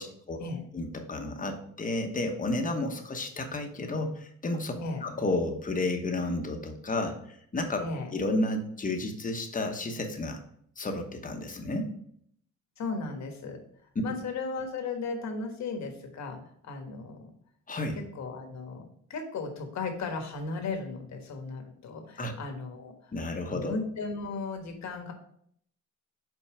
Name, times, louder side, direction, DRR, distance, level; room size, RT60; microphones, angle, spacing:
voice 1, 0.0-0.4 0.7-7.8 8.1-10.4 10.8-11.9 17.7-18.0 22.2-22.4 23.1-23.8, left 2 dB, 25° left, 4 dB, 1.1 m, -32 dB
voice 2, 7.8-8.1 12.8-13.6 14.0-17.3 17.9-23.1 23.5-25.1, left 4 dB, 65° left, 4 dB, 1.4 m, -36 dB
5.6 x 4.0 x 4.8 m, 0.66 s
cardioid pair, 90°, 30 cm